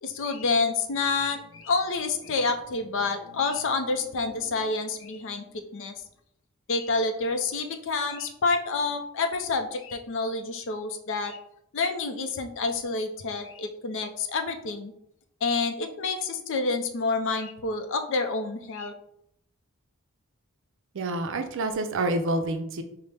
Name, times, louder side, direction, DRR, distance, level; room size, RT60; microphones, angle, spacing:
voice 1, 0.0-5.4 5.7-5.9 6.7-11.4 11.7-14.9 15.4-18.9, left 3 dB, 60° left, 6 dB, 0.5 m, -28 dB
voice 2, 20.9-22.8, right 2 dB, 60° right, 7 dB, 0.5 m, -28 dB
5.5 x 2.1 x 3.3 m, 0.76 s
head